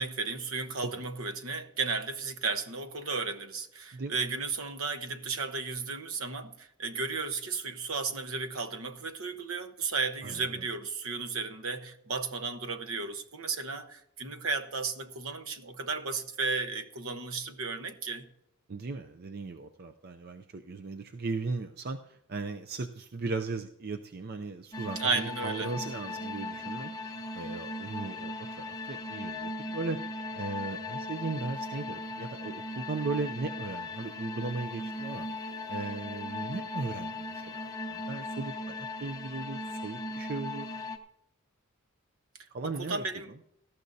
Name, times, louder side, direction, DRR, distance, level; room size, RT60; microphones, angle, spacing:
voice 1, 0.0-18.3 25.0-25.7 42.6-43.3, right 4 dB, 70° right, 1.1 m, -34 dB
voice 2, 10.2-10.7 18.7-26.9 27.3-30.0 30.3-35.3 35.7-37.6 37.9-40.7 42.5-43.0, right 3 dB, 45° right, 0.5 m, -37 dB
sound 1, 24.7-41.0, left 2 dB, 15° left, 0.9 m, -38 dB
18.0 x 13.5 x 2.7 m
head